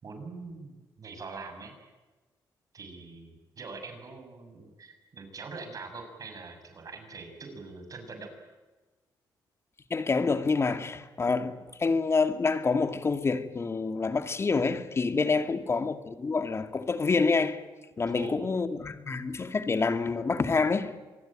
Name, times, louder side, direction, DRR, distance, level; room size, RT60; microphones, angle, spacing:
voice 1, 0.0-1.7 2.7-8.3 18.2-18.3, right 4 dB, 45° right, 7.1 m, -43 dB
voice 2, 9.9-17.6 18.0-21.0, left 4 dB, 35° left, 2.3 m, -27 dB
26.5 x 19.5 x 8.9 m
cardioid pair, 95°, 8 cm